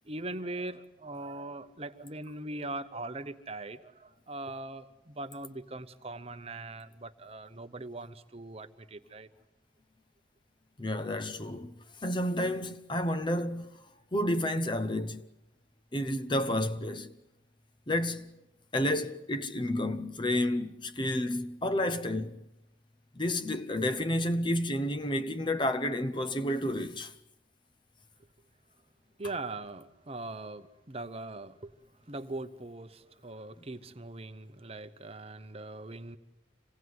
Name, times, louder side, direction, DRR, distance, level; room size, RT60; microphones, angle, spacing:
voice 1, 0.0-9.3 29.2-31.7 32.1-36.2, right 2 dB, 30° right, 0.9 m, -41 dB
voice 2, 10.8-11.7 12.0-13.7 14.1-15.3 15.9-17.1 17.9-18.3 18.7-22.4 23.2-27.1, left 1 dB, 25° left, 0.8 m, -30 dB
26.0 x 17.5 x 9.6 m
head